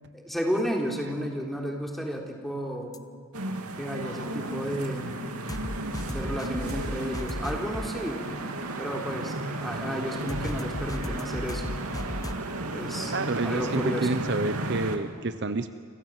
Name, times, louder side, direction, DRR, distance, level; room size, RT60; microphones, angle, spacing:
voice 1, 0.1-3.0 3.8-5.3 6.1-8.4 8.8-9.3 9.6-11.7 12.7-13.1 13.4-14.2, equal, ahead, 0 dB, 3.5 m, -32 dB
sound 1, 2.9-3.0 5.5-7.9 10.3-12.3, left 1 dB, 15° left, 0.9 m, -35 dB
sound 2, 3.3-15.0, right 2 dB, 90° right, 2.7 m, -34 dB
voice 2, 13.1-15.7, right 3 dB, 50° right, 10 dB, 1.0 m, -29 dB
30.0 x 25.5 x 7.5 m, 2.1 s
head